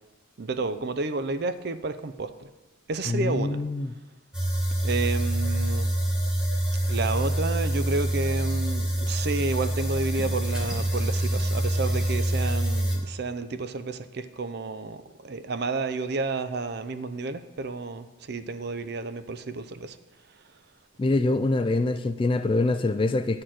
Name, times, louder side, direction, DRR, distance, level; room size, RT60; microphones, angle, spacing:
voice 1, 0.4-2.3 2.9-3.6 4.8-5.9 6.9-20.0, right 3 dB, 55° right, 0.5 m, -31 dB
voice 2, 3.1-3.9 21.0-23.4, left 2 dB, 25° left, 0.3 m, -25 dB
sound 1, 4.3-13.0, right 1 dB, 5° right, 1.4 m, -26 dB
9.7 x 4.4 x 7.6 m
head